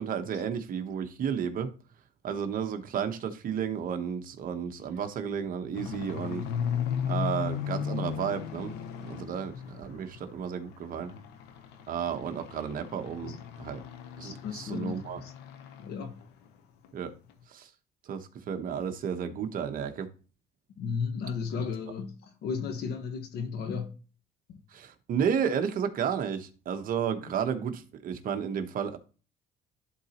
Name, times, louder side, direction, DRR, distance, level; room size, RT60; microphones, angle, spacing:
voice 1, 0.0-1.7 2.2-6.4 7.1-11.1 11.9-13.8 14.2-15.2 16.9-17.1 17.5-17.7 18.1-20.1 24.7-29.0, right 7 dB, 55° right, 1.0 m, -32 dB
sound 1, 5.7-10.3 10.7-15.9 16.2-16.5 16.8-16.9 17.3-17.4, left 8 dB, 90° left, 0.9 m, -36 dB
voice 2, 14.2-15.3 15.8-16.2 20.8-23.9 24.5-24.6, left 5 dB, 75° left, 1.3 m, -34 dB
11.5 x 4.0 x 2.9 m
cardioid pair, 110°, 17 cm